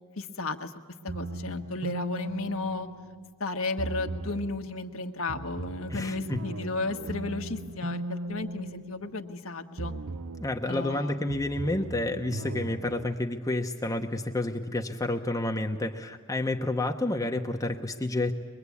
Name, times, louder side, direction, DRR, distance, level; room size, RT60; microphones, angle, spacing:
voice 1, 0.2-0.7 1.0-2.9 3.4-9.9 10.7-11.3, left 3 dB, 85° left, 5 dB, 1.4 m, -34 dB
sound 1, 1.1-3.3 3.8-4.6 5.3-9.4 9.8-10.6 11.3-13.1, right 2 dB, 70° right, 0.7 m, -37 dB
voice 2, 5.9-6.4 10.4-18.3, left 2 dB, 15° left, 3 dB, 0.9 m, -30 dB
23.0 x 22.5 x 8.4 m, 1.4 s
head